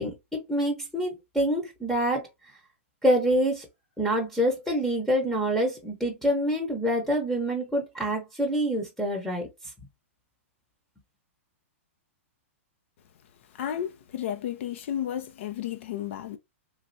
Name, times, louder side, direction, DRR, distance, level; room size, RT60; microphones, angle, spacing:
voice 1, 0.0-2.3 3.0-3.7 4.0-9.5, equal, 5° left, 0.8 m, -26 dB
voice 2, 13.5-16.4, left 10 dB, 60° left, 0.4 m, -32 dB
3.1 x 2.4 x 2.6 m
hypercardioid pair, 135°, 8 cm